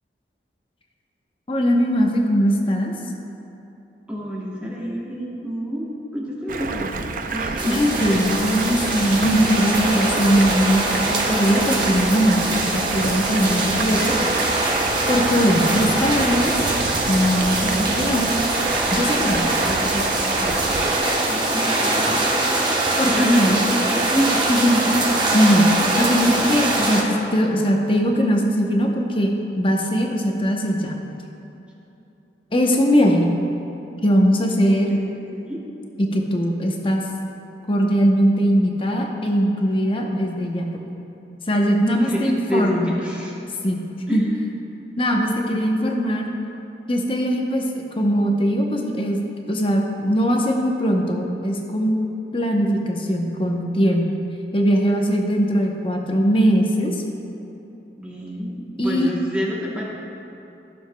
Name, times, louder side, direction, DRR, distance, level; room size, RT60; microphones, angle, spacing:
voice 1, 1.5-2.9 7.6-14.2 15.1-16.6 17.1-18.3 18.9-19.4 20.4-20.6 23.0-23.6 24.5-24.8 25.3-25.7 26.0-31.0 32.5-33.3 34.0-34.9 36.0-37.0 37.7-40.7 41.5-42.9 43.6-43.8 44.1-44.2 45.0-46.3 46.9-49.2 49.5-52.0 52.3-54.1 54.5-57.0 58.8-59.1, equal, 30° left, 1 dB, 0.8 m, -20 dB
voice 2, 4.1-5.9 6.1-7.8 19.6-20.5 21.3-22.8 23.1-24.4 24.8-25.3 34.9-35.6 41.9-43.3 44.1-44.3 58.0-59.9, equal, 5° right, -5 dB, 1.0 m, -28 dB
Stream, 6.5-21.0, right 4 dB, 50° right, 0.4 m, -29 dB
sound 1, 7.6-27.0, right 2 dB, 25° right, 0.9 m, -23 dB
14.5 x 7.0 x 2.2 m, 3.0 s
head